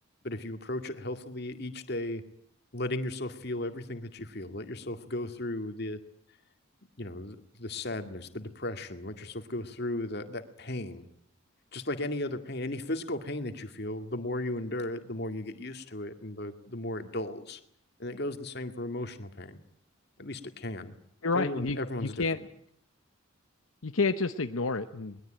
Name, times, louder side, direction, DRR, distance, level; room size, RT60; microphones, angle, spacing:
voice 1, 0.2-2.2 2.7-6.0 7.0-11.1 11.7-17.6 18.0-19.6 20.2-20.9 21.3-22.2, left 1 dB, 50° left, 7 dB, 2.1 m, -35 dB
voice 2, 21.2-22.4 23.8-25.2, left 3 dB, 80° left, 8 dB, 1.0 m, -29 dB
22.0 x 21.0 x 9.0 m, 0.66 s
head